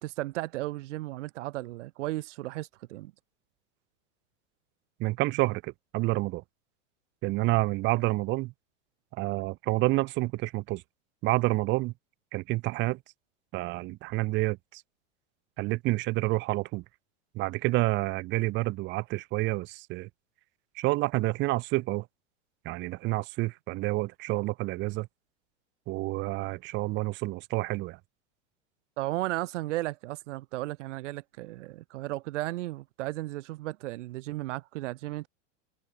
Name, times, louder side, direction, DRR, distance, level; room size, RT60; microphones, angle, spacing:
voice 1, 0.0-3.1 29.0-35.3, right 17 dB, 70° right, 3.3 m, -35 dB
voice 2, 5.0-6.4 7.2-8.5 9.2-10.8 11.2-11.9 12.3-13.0 13.5-14.8 15.6-16.8 17.3-20.1 20.8-22.1 22.7-25.1 25.9-28.0, right 20 dB, 30° right, 0.5 m, -29 dB
hypercardioid pair, 115°, 38 cm